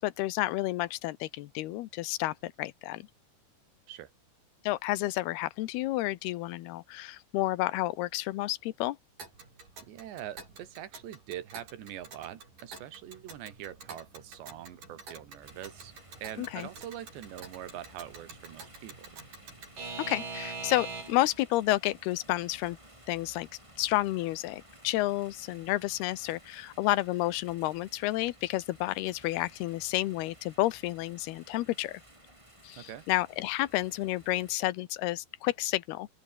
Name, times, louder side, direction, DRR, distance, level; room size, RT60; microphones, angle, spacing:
voice 1, 0.0-3.1 4.6-9.0 16.4-16.7 20.0-22.8 23.1-23.5 23.8-32.0 32.6-36.1, left 17 dB, 75° left, 2.7 m, -30 dB
Alarm / Clock, 9.2-21.3, right 4 dB, 50° right, 8.2 m, -45 dB
voice 2, 9.9-15.9 16.2-19.1 32.8-33.0, right 11 dB, 80° right, 4.5 m, -43 dB
sound 1, 15.4-34.6, right 1 dB, 5° right, 7.0 m, -56 dB
open air
omnidirectional pair, 5.0 m